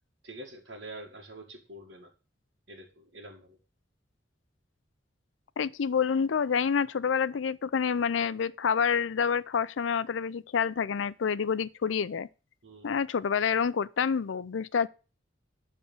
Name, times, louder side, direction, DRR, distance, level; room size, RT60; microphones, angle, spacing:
voice 1, 0.2-2.1 2.7-3.6 12.6-12.9, right 1 dB, 70° right, 1.8 m, -46 dB
voice 2, 5.6-12.3 12.8-14.9, left 6 dB, 90° left, 0.5 m, -28 dB
11.0 x 3.7 x 7.1 m
head